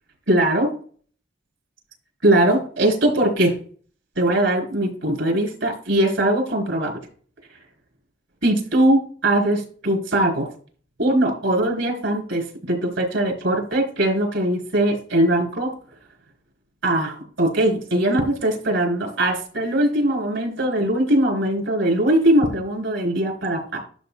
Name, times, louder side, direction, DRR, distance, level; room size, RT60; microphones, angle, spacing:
voice 1, 0.3-0.7 2.2-3.5 4.2-6.9 8.4-10.5 11.0-15.7 16.8-23.8, right 1 dB, 85° right, 2 dB, 4.2 m, -21 dB
12.0 x 6.5 x 2.4 m, 0.43 s
head